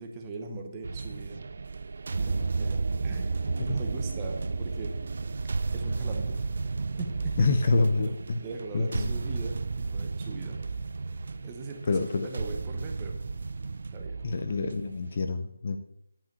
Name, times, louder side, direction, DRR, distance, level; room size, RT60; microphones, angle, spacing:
voice 1, 0.0-1.5 2.2-5.0 5.7-6.4 7.0-7.5 8.0-10.6 11.4-13.2 13.9-14.2, right 3 dB, 10° right, 2 dB, 0.8 m, -40 dB
sound 1, 0.8-15.1, right 4 dB, 40° right, 0.4 m, -33 dB
voice 2, 7.4-8.4 8.7-9.1 11.9-12.3 14.2-15.8, left 3 dB, 30° left, 7 dB, 0.6 m, -26 dB
10.5 x 5.6 x 6.7 m, 0.75 s
figure-of-eight pair, 175°, 0 cm